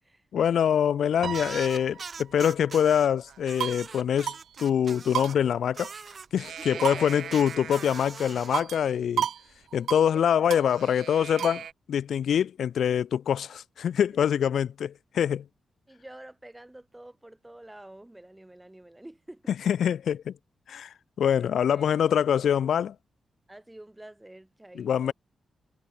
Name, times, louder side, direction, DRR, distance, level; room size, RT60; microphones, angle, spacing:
voice 1, 0.3-4.3 4.6-5.9 6.3-9.3 9.7-15.4 19.7-20.3 20.7-22.9 24.8-25.1, left 8 dB, 75° left, 1.1 m, -25 dB
Piano, 1.2-3.7, right 7 dB, 60° right, 1.2 m, -41 dB
sound 1, 1.3-3.1 3.4-5.4 5.7-8.6, right 5 dB, 40° right, 1.5 m, -42 dB
sound 2, 3.3-3.9 4.3-4.4 4.7-4.8 5.1-6.1 6.4-8.1 8.5-8.9 9.2-9.4 9.7-10.1 10.5-11.7, right 9 dB, 75° right, 0.4 m, -33 dB
voice 2, 6.6-7.1 10.0-10.1 14.2-14.4 15.9-19.8 21.5-22.3 23.5-25.1, right 1 dB, 10° right, 6.1 m, -47 dB
wide cardioid pair, 145°, 0 cm